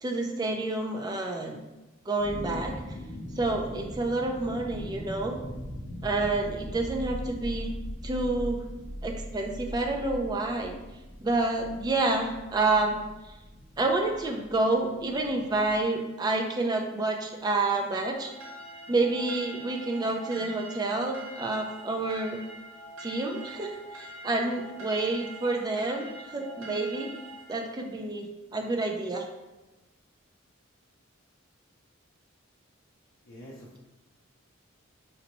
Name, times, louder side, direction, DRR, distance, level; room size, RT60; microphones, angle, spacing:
voice 1, 0.0-1.6 2.1-2.7 3.4-5.4 6.0-7.7 8.0-8.6 9.0-10.7 11.2-13.0 13.8-18.3 18.9-22.4 23.0-27.1 27.5-29.3, right 2 dB, 20° right, 3 dB, 0.3 m, -28 dB
sound 1, 2.2-15.8, equal, 5° right, 1.0 m, -40 dB
sound 2, 18.1-27.6, right 1 dB, 70° right, 0.7 m, -44 dB
voice 2, 33.2-33.8, equal, 60° left, -5 dB, 0.5 m, -46 dB
3.9 x 2.2 x 2.9 m, 1.1 s
head